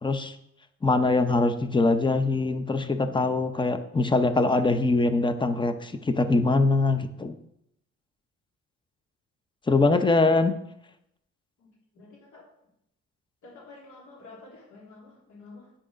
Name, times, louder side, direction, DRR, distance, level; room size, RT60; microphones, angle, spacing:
voice 1, 0.0-0.4 0.8-7.4 9.7-10.5, left 3 dB, 15° left, 10 dB, 0.8 m, -23 dB
voice 2, 11.9-12.4 13.4-15.7, left 3 dB, 80° left, -2 dB, 3.0 m, -50 dB
9.9 x 6.1 x 5.1 m, 0.78 s
cardioid pair, 90°, 30 cm